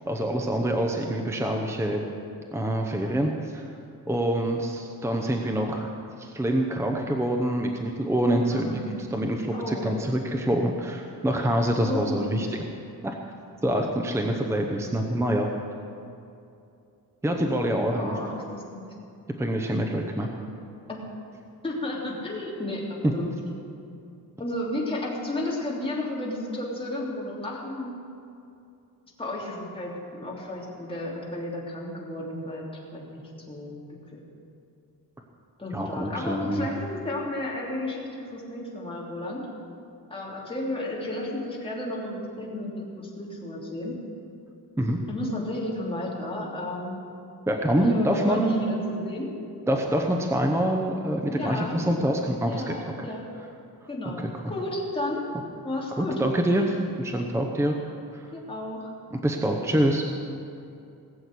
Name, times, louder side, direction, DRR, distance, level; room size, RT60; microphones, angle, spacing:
voice 1, 0.0-2.0 2.5-3.7 4.1-5.9 6.2-8.7 9.1-12.5 13.0-13.2 13.6-15.5 17.2-18.2 19.4-20.3 23.0-23.1 35.7-36.7 44.8-45.0 47.5-48.7 49.7-53.1 54.2-54.3 56.0-57.8 58.1-58.3 59.2-60.0, right 1 dB, 5° right, 2 dB, 0.8 m, -25 dB
voice 2, 8.3-9.0 9.5-10.0 11.8-12.5 17.9-18.8 20.9-21.0 21.6-23.3 24.4-28.0 29.2-32.7 32.9-33.2 33.5-33.8 34.1-34.2 35.6-39.5 40.1-44.0 45.1-47.0 47.7-49.3 51.2-51.8 52.4-53.3 53.9-55.2 55.6-56.2 58.3-58.9, left 1 dB, 15° left, -4 dB, 3.0 m, -33 dB
19.0 x 7.9 x 8.3 m, 2.6 s
wide cardioid pair, 170°, 37 cm